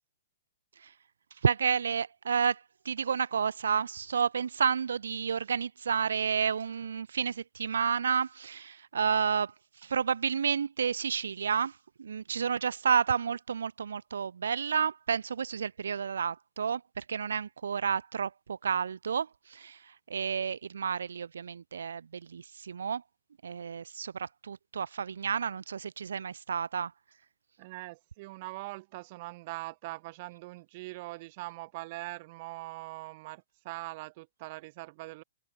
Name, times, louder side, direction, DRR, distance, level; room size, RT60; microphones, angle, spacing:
voice 1, 1.4-23.0 23.4-26.9, right 7 dB, 90° right, 1.6 m, -31 dB
voice 2, 27.6-35.2, right 22 dB, 40° right, 3.7 m, -42 dB
hypercardioid pair, 155°, 0 cm